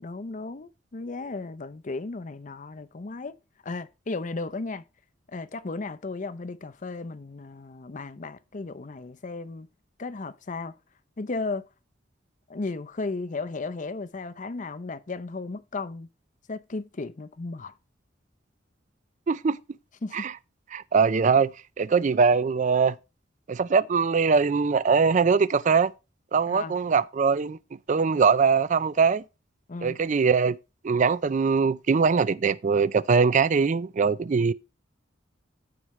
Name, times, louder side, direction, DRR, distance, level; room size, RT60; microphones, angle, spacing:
voice 1, 0.0-3.4 3.6-4.8 5.3-9.7 10.0-10.7 11.2-11.7 12.5-16.1 16.5-17.7 20.0-20.3 26.5-26.8 29.7-30.0, left 3 dB, 40° left, 0.6 m, -35 dB
voice 2, 19.3-19.6 20.1-20.3 20.7-21.5 21.8-23.0 23.5-25.9 26.3-27.6 27.9-29.2 29.8-30.6 30.8-34.5, right 5 dB, 40° right, 0.4 m, -22 dB
14.5 x 4.9 x 3.1 m
head